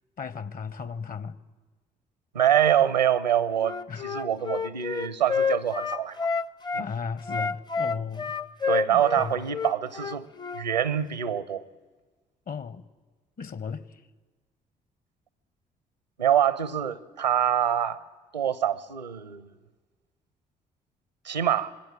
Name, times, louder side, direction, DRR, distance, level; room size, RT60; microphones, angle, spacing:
voice 1, 0.2-1.4 3.9-4.1 6.8-8.3 8.9-9.4 12.5-12.9 13.4-13.8, left 6 dB, 40° left, 1.2 m, -35 dB
voice 2, 2.3-6.3 6.7-6.9 8.7-10.3 10.5-11.6 16.2-18.0 18.3-19.5 21.2-21.7, right 10 dB, 85° right, 0.7 m, -25 dB
Wind instrument woodwind instrument, 3.6-6.9 7.2-10.6, left 5 dB, 20° left, 0.7 m, -29 dB
26.0 x 21.0 x 8.7 m
figure-of-eight pair, 45°, 21 cm